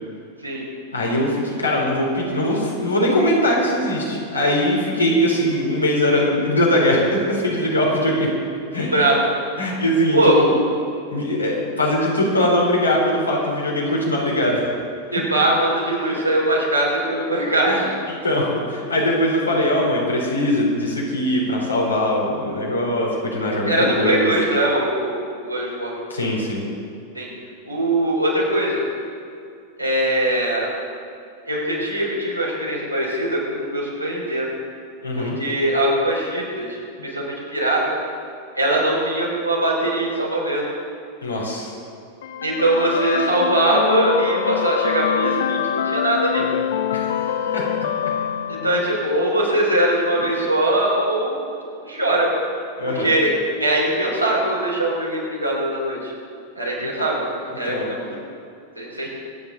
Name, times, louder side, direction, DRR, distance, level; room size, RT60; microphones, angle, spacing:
voice 1, 0.9-8.3 8.7-8.9 9.6-10.5 11.1-14.6 17.7-17.8 18.2-24.3 26.1-26.6 35.0-35.4 41.2-41.7 46.9-47.6 52.8-53.2 56.8-56.9 57.7-58.0, left 1 dB, 80° left, -3 dB, 3.6 m, -21 dB
voice 2, 10.1-10.5 15.1-18.0 23.7-25.9 27.1-27.3 27.6-28.8 29.8-30.7 31.5-34.5 35.1-37.8 38.6-40.7 42.4-46.5 48.5-51.6 51.8-52.3 52.9-56.1 56.5-57.3 57.6-58.0 58.8-59.1, right 1 dB, 90° right, -5 dB, 4.3 m, -21 dB
sound 1, 42.2-49.2, left 9 dB, 60° left, 0.6 m, -25 dB
24.5 x 9.5 x 4.0 m, 2.5 s
figure-of-eight pair, 90°, 0 cm